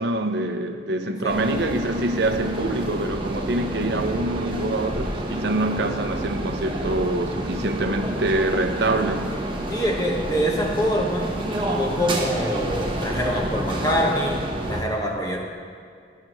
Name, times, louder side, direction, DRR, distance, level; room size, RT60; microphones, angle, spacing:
voice 1, 0.0-9.4, right 2 dB, 60° right, 6 dB, 0.6 m, -25 dB
sound 1, 1.3-14.8, right 1 dB, 25° right, 1.0 m, -29 dB
voice 2, 9.7-11.3 11.7-15.4, equal, 20° left, -1 dB, 1.2 m, -25 dB
13.0 x 10.5 x 3.1 m, 2.3 s
head